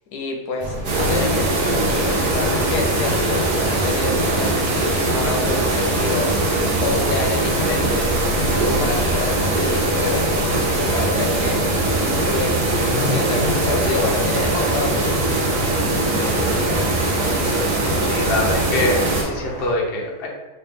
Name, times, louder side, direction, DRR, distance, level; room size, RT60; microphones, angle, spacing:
voice 1, 0.1-6.3 6.8-11.6 12.2-12.6 13.0-15.2, left 4 dB, 80° left, 1 dB, 1.1 m, -28 dB
sound 1, 0.6-19.7, left 1 dB, 50° right, 1.0 m, -32 dB
sound 2, 0.8-19.2, right 2 dB, 80° right, 1.4 m, -21 dB
voice 2, 18.0-20.3, left 1 dB, 50° left, -2 dB, 0.8 m, -24 dB
3.1 x 3.0 x 3.5 m, 1.2 s
omnidirectional pair, 1.7 m